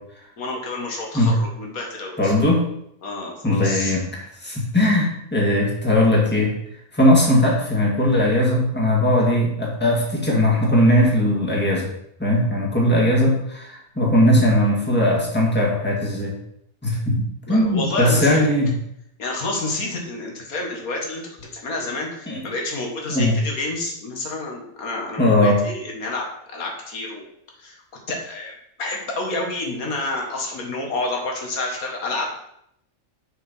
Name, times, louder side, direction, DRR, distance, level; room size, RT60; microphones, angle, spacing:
voice 1, 0.4-2.3 3.0-4.0 17.5-18.5 19.2-27.3 27.6-27.8 28.1-28.5 28.8-32.4, left 2 dB, 90° left, 0 dB, 1.9 m, -29 dB
voice 2, 2.2-2.6 3.4-6.5 6.9-11.9 12.2-16.4 16.8-18.7 22.3-22.5 23.1-23.4 25.2-25.6, left 1 dB, 5° left, -3 dB, 1.8 m, -19 dB
6.9 x 4.6 x 5.5 m, 0.74 s
omnidirectional pair, 1.5 m